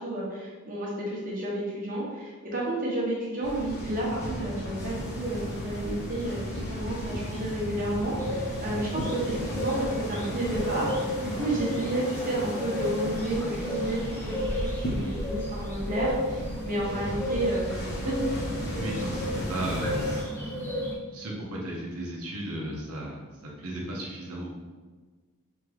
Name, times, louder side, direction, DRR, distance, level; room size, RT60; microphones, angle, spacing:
voice 1, 0.0-18.2, right 1 dB, 40° right, -4 dB, 1.2 m, -31 dB
sound 1, 3.4-20.2, equal, 50° left, 1.0 m, -35 dB
sound 2, 8.2-20.9, equal, 10° left, 0.7 m, -33 dB
voice 2, 18.7-20.3 21.1-23.2 23.6-24.5, right 1 dB, 80° right, -2 dB, 1.1 m, -34 dB
3.7 x 3.7 x 3.3 m, 1.4 s
head